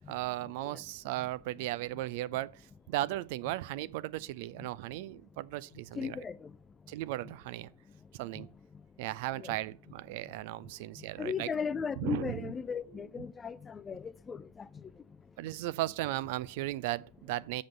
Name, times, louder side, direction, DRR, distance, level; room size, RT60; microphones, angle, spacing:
voice 1, 0.1-2.6 2.9-6.2 6.9-7.7 8.1-8.5 9.0-11.5 12.0-12.5 12.9-13.0 15.4-17.6, right 16 dB, 50° right, 0.4 m, -36 dB
voice 2, 6.0-6.5 8.4-8.5 9.4-9.6 11.2-14.8, left 6 dB, 15° left, 0.4 m, -37 dB
7.4 x 6.1 x 6.7 m
figure-of-eight pair, 90°, 0 cm